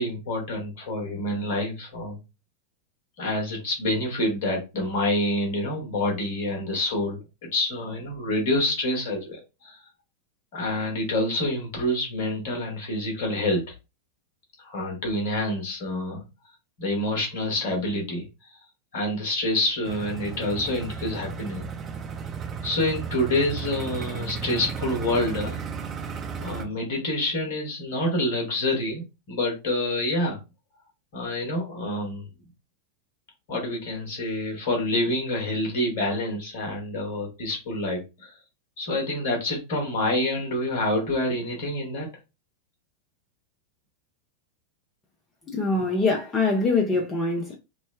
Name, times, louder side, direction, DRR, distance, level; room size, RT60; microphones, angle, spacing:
voice 1, 0.0-2.2 3.2-7.2 7.5-9.8 10.5-13.6 14.6-16.3 16.8-18.3 18.9-21.7 22.6-25.6 26.4-30.4 31.1-32.3 33.5-38.3 38.8-42.1, left 1 dB, 55° left, 1.2 m, -27 dB
sound 1, 19.8-26.6, right 6 dB, 25° right, 0.7 m, -34 dB
voice 2, 45.5-47.5, left 3 dB, 20° left, 0.6 m, -24 dB
3.2 x 2.1 x 3.2 m
figure-of-eight pair, 90°, 0 cm